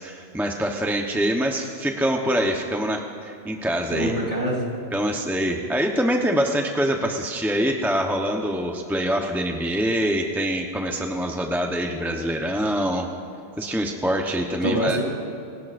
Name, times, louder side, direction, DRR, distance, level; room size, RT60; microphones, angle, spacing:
voice 1, 0.0-4.1 4.9-13.1 13.6-15.0, equal, ahead, 1 dB, 0.8 m, -24 dB
voice 2, 3.9-4.7 14.6-15.0, right 1 dB, 35° right, -3 dB, 3.8 m, -24 dB
27.5 x 17.5 x 2.6 m, 2.8 s
omnidirectional pair, 1.3 m